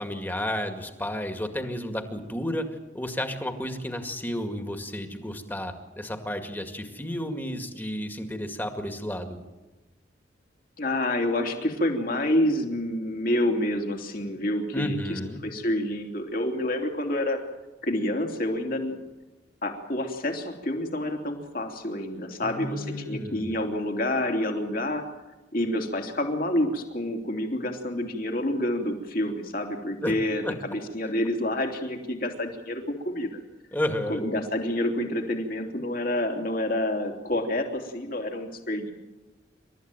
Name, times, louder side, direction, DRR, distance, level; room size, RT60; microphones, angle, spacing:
voice 1, 0.0-2.7 2.9-9.4 14.7-15.4 22.4-23.6 30.0-30.1 30.4-30.5 33.7-34.2, left 1 dB, 10° left, 6 dB, 2.1 m, -32 dB
voice 2, 10.8-15.0 15.4-17.4 17.8-19.0 19.6-25.0 25.5-33.4 34.1-38.9, left 1 dB, 50° left, 3 dB, 3.1 m, -28 dB
28.0 x 13.5 x 9.1 m, 1.1 s
head